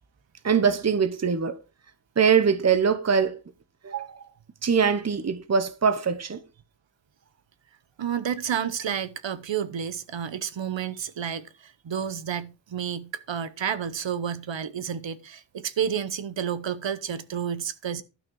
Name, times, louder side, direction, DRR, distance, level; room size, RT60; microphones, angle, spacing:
voice 1, 0.4-1.6 2.2-3.4 3.8-4.2 4.6-6.4, right 6 dB, 35° right, 0.9 m, -22 dB
voice 2, 8.0-18.0, right 8 dB, 85° right, 1.0 m, -30 dB
12.0 x 6.2 x 4.7 m
wide cardioid pair, 120°, 44 cm